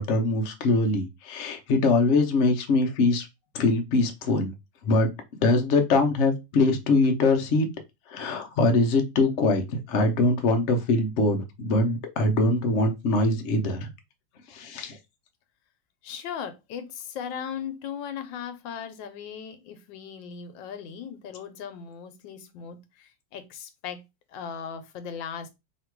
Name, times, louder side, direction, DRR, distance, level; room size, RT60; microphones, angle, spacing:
voice 1, 0.0-3.3 3.5-4.5 4.8-5.1 5.4-7.7 8.1-13.9 14.5-15.0, left 2 dB, 60° left, 0.8 m, -23 dB
voice 2, 16.0-24.0 24.3-25.5, left 7 dB, 80° left, 1.4 m, -38 dB
2.9 x 2.9 x 4.5 m
omnidirectional pair, 2.0 m